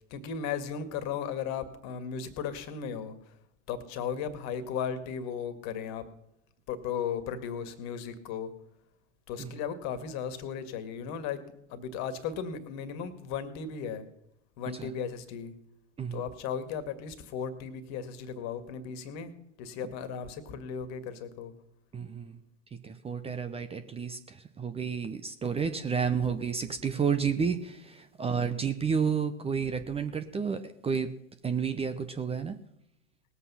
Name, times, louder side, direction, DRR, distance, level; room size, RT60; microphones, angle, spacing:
voice 1, 0.1-3.3 3.7-6.1 6.7-8.5 9.3-11.4 11.7-14.1 14.6-15.5 16.1-21.5 26.0-26.4 29.6-29.7, left 7 dB, 45° left, 11 dB, 2.0 m, -36 dB
voice 2, 21.9-22.4 22.8-31.1 31.4-32.6, right 6 dB, 15° right, 10 dB, 0.8 m, -31 dB
19.0 x 8.3 x 5.7 m, 0.80 s
hypercardioid pair, 95°, 37 cm